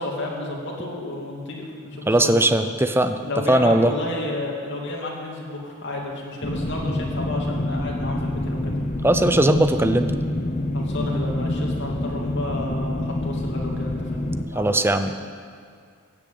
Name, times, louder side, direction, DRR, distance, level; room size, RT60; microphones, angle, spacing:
voice 1, 0.0-2.3 3.2-8.7 10.7-14.2 14.5-14.8, left 2 dB, 60° left, -2 dB, 2.8 m, -31 dB
voice 2, 2.1-3.2 3.5-3.9 9.0-10.1 14.5-15.1, right 1 dB, 10° right, 8 dB, 0.7 m, -19 dB
sound 1, 6.4-14.4, left 1 dB, 35° left, 0.8 m, -27 dB
15.5 x 7.9 x 8.9 m, 2.2 s
head